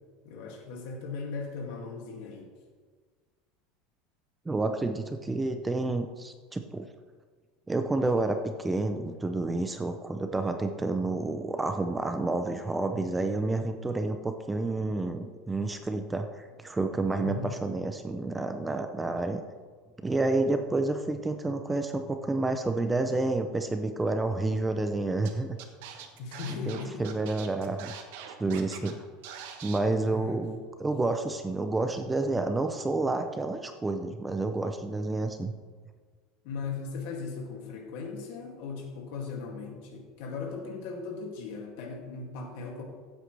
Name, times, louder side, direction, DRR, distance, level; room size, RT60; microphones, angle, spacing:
voice 1, 0.2-2.5 17.2-17.7 26.2-27.1 30.1-30.4 36.4-42.8, left 4 dB, 55° left, 1 dB, 2.2 m, -38 dB
voice 2, 4.5-6.9 7.7-19.4 20.0-25.6 26.7-28.0 28.4-29.0 29.6-35.5, right 2 dB, 10° right, 7 dB, 0.4 m, -29 dB
Scratching (performance technique), 25.3-25.4 25.6-28.9 29.2-29.8, right 9 dB, 65° right, 1.2 m, -43 dB
15.0 x 8.2 x 3.3 m, 1.5 s
supercardioid pair, 175°, 0 cm